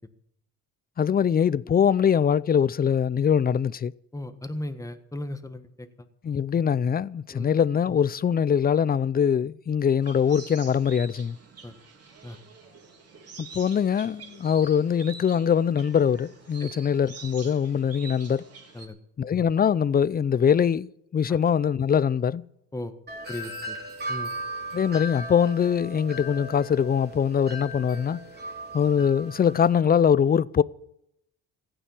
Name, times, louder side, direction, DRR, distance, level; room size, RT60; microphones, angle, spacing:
voice 1, 1.0-3.9 6.2-11.4 13.4-18.4 19.2-22.4 24.7-28.2 28.7-30.6, left 8 dB, 30° left, 0.5 m, -23 dB
voice 2, 4.1-5.9 7.3-7.5 11.6-11.7 12.2-12.4 16.6-16.7 18.7-19.0 21.3-21.4 22.7-22.9 23.3-23.8 24.1-24.3, left 1 dB, 10° left, 1.5 m, -36 dB
sound 1, 10.0-18.9, right 5 dB, 55° right, 3.7 m, -46 dB
Wind chime, 23.1-29.8, right 1 dB, 35° right, 3.3 m, -37 dB
16.0 x 9.0 x 8.4 m
cardioid pair, 90°, 30 cm